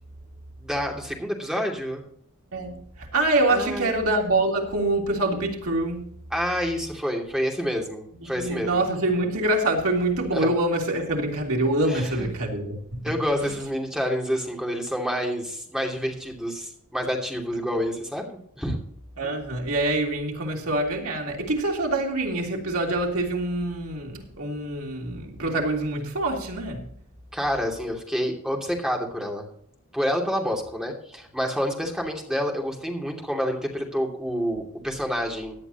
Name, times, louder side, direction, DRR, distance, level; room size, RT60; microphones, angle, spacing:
voice 1, 0.6-2.0 3.5-3.9 6.3-8.8 10.3-10.5 11.8-12.3 13.0-18.2 18.6-18.8 27.3-29.5 29.9-35.5, equal, 5° right, 0 dB, 2.8 m, -28 dB
voice 2, 2.5-6.1 8.3-13.1 19.2-26.9, right 2 dB, 70° right, -1 dB, 3.3 m, -25 dB
17.0 x 10.5 x 3.0 m, 0.67 s
head